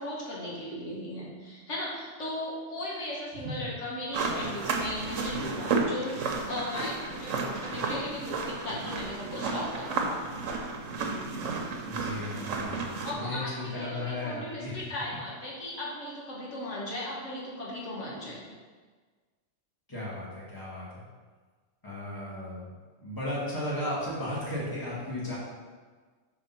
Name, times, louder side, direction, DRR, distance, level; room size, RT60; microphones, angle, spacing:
voice 1, 0.0-10.2 13.0-18.4, left 1 dB, 70° left, -5 dB, 1.5 m, -37 dB
sound 1, 4.1-13.1, right 4 dB, 90° right, 1.2 m, -32 dB
voice 2, 11.9-12.8 13.1-14.9 19.9-21.0 21.8-22.7 23.0-25.4, left 1 dB, 15° left, -7 dB, 1.7 m, -35 dB
5.1 x 3.9 x 5.8 m, 1.5 s
omnidirectional pair, 1.3 m